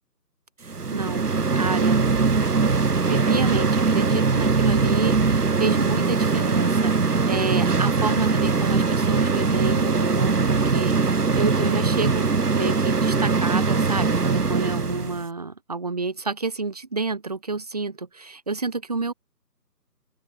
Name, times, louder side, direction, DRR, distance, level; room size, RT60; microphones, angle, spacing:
voice 1, 0.6-2.1 3.1-12.3 12.6-19.1, right 3 dB, 25° right, 1.7 m, -29 dB
sound 1, 0.7-15.2, right 4 dB, 65° right, 1.4 m, -21 dB
open air
figure-of-eight pair, 160°, 49 cm